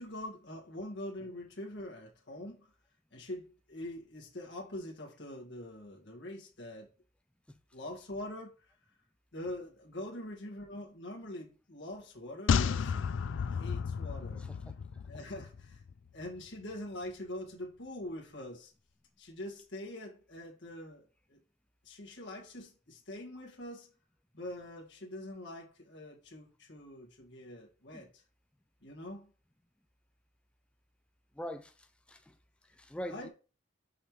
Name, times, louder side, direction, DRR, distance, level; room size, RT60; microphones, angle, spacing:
voice 1, 0.0-2.7 3.1-6.9 7.7-8.5 9.3-13.1 13.4-14.4 15.1-15.8 16.1-18.7 19.2-21.4 21.8-23.9 24.3-28.1 28.8-29.3 33.1-33.3, left 1 dB, 65° left, 1.8 m, -44 dB
sound 1, 12.5-15.9 16.2-16.3, left 6 dB, 85° left, 0.4 m, -32 dB
voice 2, 31.4-32.3 32.7-33.3, equal, 5° left, 0.3 m, -43 dB
5.7 x 5.4 x 3.1 m
head